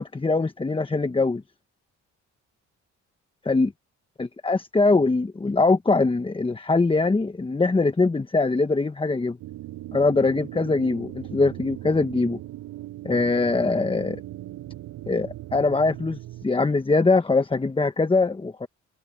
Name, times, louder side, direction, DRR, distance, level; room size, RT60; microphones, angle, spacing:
voice 1, 0.0-1.4 3.5-3.7 4.2-9.4 9.9-12.4 13.0-14.2 15.1-18.7, left 3 dB, 15° left, 1.1 m, -22 dB
sound 1, 9.4-16.5, right 15 dB, 90° right, 7.8 m, -39 dB
cardioid pair, 90°, 30 cm